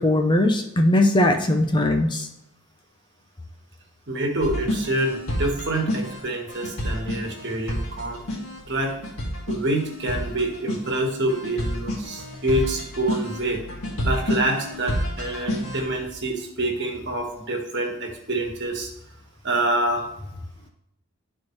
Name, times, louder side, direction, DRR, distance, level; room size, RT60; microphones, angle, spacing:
voice 1, 0.0-2.3, left 1 dB, 20° left, 4 dB, 0.6 m, -20 dB
voice 2, 4.1-8.2 8.7-9.0 9.5-13.6 14.0-18.9 19.4-20.3, right 1 dB, 50° right, 1 dB, 1.5 m, -26 dB
sound 1, 4.4-15.9, equal, 75° left, 2.0 m, -30 dB
12.0 x 4.4 x 3.1 m, 0.83 s
head